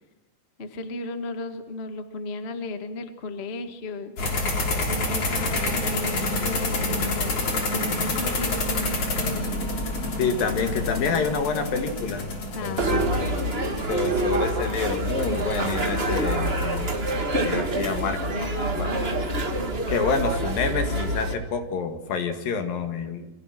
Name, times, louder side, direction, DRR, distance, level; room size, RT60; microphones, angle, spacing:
voice 1, 0.6-4.1 4.8-9.5 12.5-13.5 18.2-19.8, left 3 dB, 90° left, 8 dB, 0.5 m, -35 dB
sound 1, 4.2-17.0, left 2 dB, 40° left, 4.2 m, -29 dB
voice 2, 10.2-12.3 12.6-13.2 13.9-17.0 17.4-18.4 18.8-19.0 19.9-23.3, left 5 dB, 65° left, 7 dB, 3.5 m, -28 dB
sound 2, 12.8-21.3, right 1 dB, 35° right, 0.9 m, -26 dB
29.5 x 23.5 x 6.0 m, 0.99 s
omnidirectional pair, 4.6 m